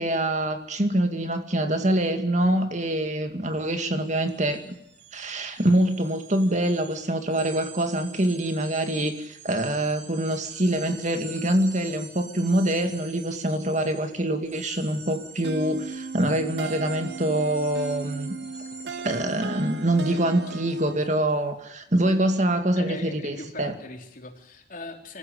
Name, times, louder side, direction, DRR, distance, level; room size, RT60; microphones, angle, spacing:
voice 1, 0.0-4.7 5.1-18.4 18.9-23.7, right 1 dB, 40° right, 7 dB, 2.3 m, -25 dB
sound 1, 3.5-3.6 3.9-21.2, right 5 dB, 85° right, 5.5 m, -46 dB
sound 2, 15.4-21.2, right 4 dB, 65° right, 0.8 m, -37 dB
voice 2, 20.1-20.6 22.8-25.2, left 2 dB, 50° left, 3 dB, 3.7 m, -40 dB
26.0 x 15.0 x 9.9 m, 0.78 s
head